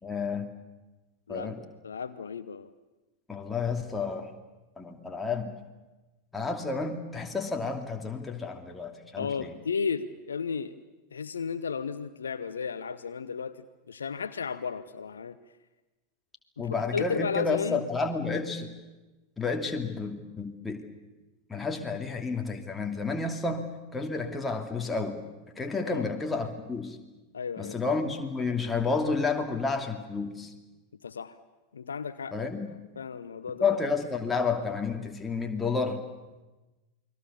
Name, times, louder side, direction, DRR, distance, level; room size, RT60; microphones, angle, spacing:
voice 1, 0.0-0.5 1.3-1.6 3.3-4.3 4.8-5.5 6.3-9.5 16.6-18.7 19.4-20.9 21.5-23.7 23.9-25.2 25.6-27.0 27.6-30.5 32.3-32.7 33.6-36.0, left 4 dB, 10° left, 3 dB, 2.7 m, -30 dB
voice 2, 1.8-2.7 9.2-10.8 11.1-15.4 16.6-17.8 25.8-26.1 27.3-27.9 31.0-31.4 31.7-33.8, left 6 dB, 70° left, 14 dB, 0.8 m, -34 dB
29.0 x 21.5 x 7.0 m, 1.1 s
figure-of-eight pair, 90°, 0 cm